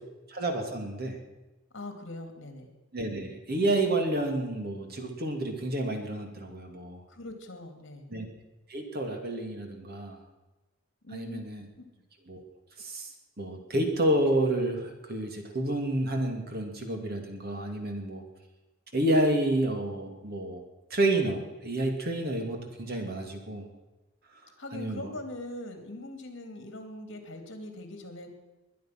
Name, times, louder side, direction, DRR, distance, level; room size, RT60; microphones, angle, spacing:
voice 1, 0.3-1.2 2.9-7.0 8.1-8.3 8.7-10.2 11.1-11.7 12.3-12.4 12.8-13.1 13.4-18.2 18.9-20.6 20.9-23.6 24.7-25.1, right 1 dB, 45° right, 4 dB, 2.6 m, -29 dB
voice 2, 1.7-2.7 7.1-8.1 11.0-11.4 11.8-11.9 24.6-28.3, left 1 dB, 60° left, 5 dB, 2.9 m, -41 dB
21.5 x 10.5 x 6.1 m, 1.1 s
head